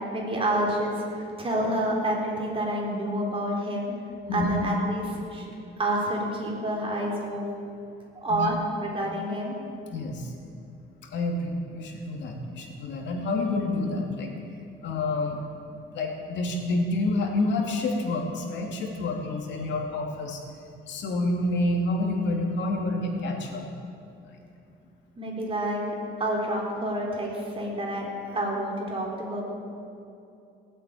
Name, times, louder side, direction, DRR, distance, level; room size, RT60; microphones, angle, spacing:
voice 1, 0.0-3.9 4.3-5.5 5.8-7.5 8.1-9.6 25.2-25.8 26.2-29.5, right 1 dB, 30° right, -2 dB, 4.2 m, -28 dB
voice 2, 9.9-10.3 11.1-14.3 14.8-15.4 15.7-20.4 20.9-23.7, left 2 dB, 75° left, 1 dB, 2.8 m, -28 dB
18.5 x 8.6 x 9.1 m, 2.7 s
cardioid pair, 115°, 19 cm